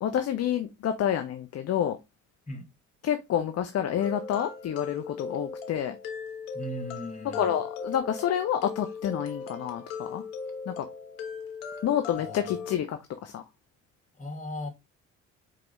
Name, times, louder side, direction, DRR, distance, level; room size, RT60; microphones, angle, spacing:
voice 1, 0.0-2.0 3.0-6.0 7.4-10.2 10.7-10.9 11.8-13.4, left 9 dB, 40° left, 0.6 m, -28 dB
sound 1, 4.0-12.8, left 5 dB, 75° left, 1.1 m, -38 dB
voice 2, 6.5-7.6 12.2-12.8 14.1-14.7, left 1 dB, 20° left, 2.2 m, -38 dB
4.9 x 4.8 x 2.2 m
hypercardioid pair, 55°, 39 cm